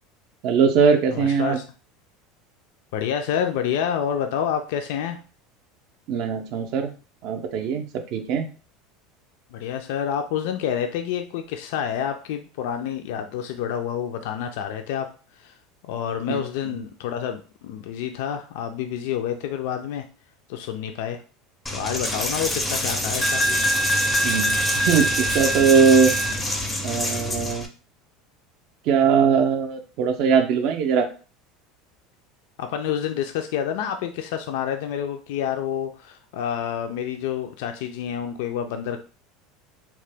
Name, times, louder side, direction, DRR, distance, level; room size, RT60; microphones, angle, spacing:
voice 1, 0.4-1.6 6.1-6.9 7.2-8.5 16.3-16.8 24.2-26.1 26.8-27.7 28.9-31.1, right 6 dB, 50° right, 5 dB, 0.4 m, -21 dB
voice 2, 1.1-1.6 2.9-5.2 9.5-15.1 15.4-15.5 15.9-20.0 20.5-21.2 21.7-23.4 32.6-39.0, left 9 dB, 75° left, 6 dB, 0.3 m, -28 dB
Coin (dropping), 21.7-27.7, equal, 10° left, 0.4 m, -24 dB
2.9 x 2.1 x 3.3 m, 0.36 s
supercardioid pair, 150°, 0 cm